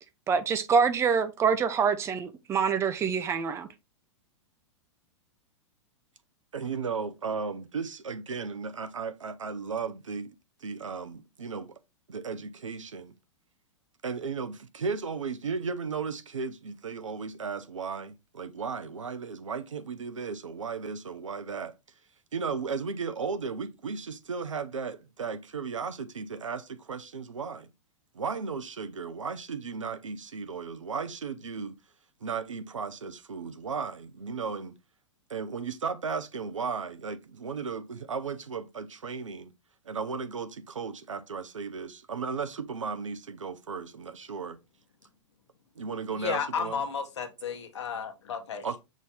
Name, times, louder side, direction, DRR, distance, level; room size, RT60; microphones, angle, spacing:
voice 1, 0.3-3.7, right 6 dB, 15° right, 0.4 m, -25 dB
voice 2, 6.5-10.3 10.6-11.7 12.1-13.1 14.0-21.7 22.3-27.7 28.1-31.7 32.2-34.8 35.3-39.5 39.9-44.6 45.8-46.8 48.6-48.8, right 5 dB, 75° right, 0.6 m, -35 dB
voice 3, 46.1-48.7, left 7 dB, 60° left, 1.0 m, -33 dB
6.2 x 2.7 x 3.2 m
figure-of-eight pair, 100°, 16 cm